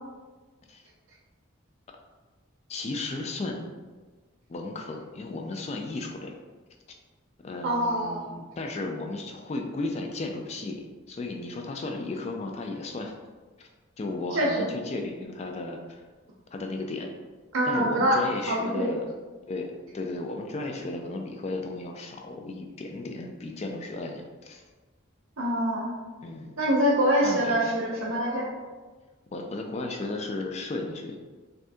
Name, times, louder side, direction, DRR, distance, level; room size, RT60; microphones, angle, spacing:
voice 1, 2.7-3.7 4.5-6.4 6.9-7.0 7.4-13.1 13.6-13.7 14.0-16.0 16.5-17.1 17.7-19.1 19.5-24.6 26.2-26.6 27.2-27.6 28.1-28.2 29.3-31.2, left 2 dB, 30° left, 3 dB, 0.3 m, -34 dB
voice 2, 7.6-8.2 14.3-14.7 17.5-18.2 18.5-18.9 25.4-25.9 26.6-28.5, equal, 85° right, -3 dB, 0.6 m, -25 dB
2.7 x 2.5 x 3.4 m, 1.3 s
head